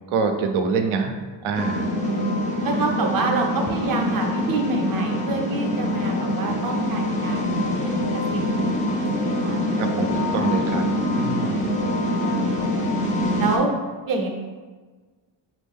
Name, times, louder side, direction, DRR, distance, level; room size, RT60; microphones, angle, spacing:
voice 1, 0.1-1.9 9.8-10.9 11.1-11.8, right 4 dB, 90° right, 5 dB, 0.6 m, -25 dB
sound 1, 1.5-13.6, left 1 dB, 20° left, 0.3 m, -24 dB
voice 2, 2.0-2.4 2.6-8.0 8.3-8.4 8.9-9.7 11.2-12.5 13.4-13.7 14.1-14.3, right 3 dB, 45° right, 2 dB, 0.6 m, -28 dB
4.4 x 2.5 x 3.5 m, 1.4 s
cardioid pair, 155°, 48 cm